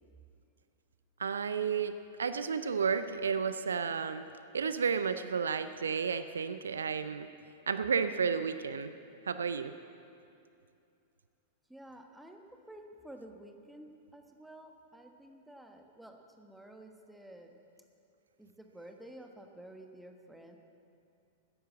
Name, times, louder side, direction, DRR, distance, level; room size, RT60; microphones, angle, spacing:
voice 1, 1.2-4.2 4.5-7.3 7.7-8.9 9.3-9.7, right 6 dB, 70° right, 11 dB, 0.5 m, -32 dB
voice 2, 11.7-17.5 18.4-20.6, right 1 dB, 5° right, 4 dB, 1.3 m, -51 dB
13.5 x 10.0 x 7.6 m, 2.5 s
figure-of-eight pair, 95°, 0 cm